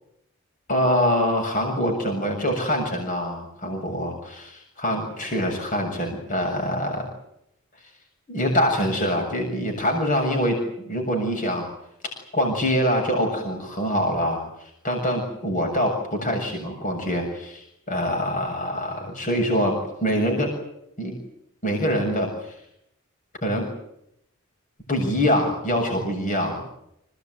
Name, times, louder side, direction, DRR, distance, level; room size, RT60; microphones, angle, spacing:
voice 1, 0.7-7.1 8.3-10.6 10.9-11.7 12.3-20.5 21.0-21.1 21.6-22.5 23.4-23.7 24.9-26.6, equal, 35° left, 1 dB, 7.1 m, -24 dB
27.0 x 19.0 x 9.5 m, 0.77 s
head